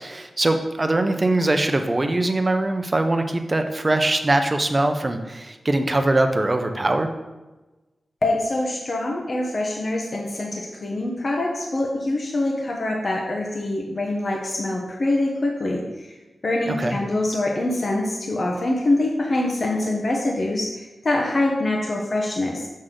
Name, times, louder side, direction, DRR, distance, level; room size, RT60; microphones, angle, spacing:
voice 1, 0.0-7.1 16.8-17.0, right 2 dB, 30° right, 6 dB, 0.7 m, -22 dB
voice 2, 8.2-16.1 16.4-22.7, left 2 dB, 50° left, -1 dB, 1.0 m, -24 dB
6.3 x 6.1 x 3.8 m, 1.1 s
wide cardioid pair, 80°, 0 cm